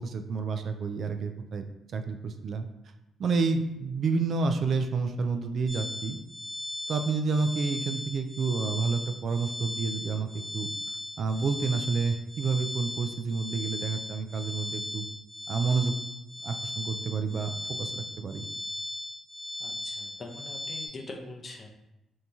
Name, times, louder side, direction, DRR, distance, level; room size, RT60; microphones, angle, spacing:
voice 1, 0.0-1.6 1.9-2.7 3.2-6.2 6.9-10.7 11.2-15.1 15.5-15.9 16.4-17.5 17.8-18.4, right 4 dB, 55° right, 7 dB, 0.3 m, -29 dB
sound 1, 5.7-20.9, left 2 dB, 5° left, 1.2 m, -38 dB
voice 2, 19.6-21.7, left 3 dB, 40° left, 2 dB, 0.6 m, -43 dB
2.9 x 2.7 x 3.4 m, 0.90 s
cardioid pair, 90°, 0 cm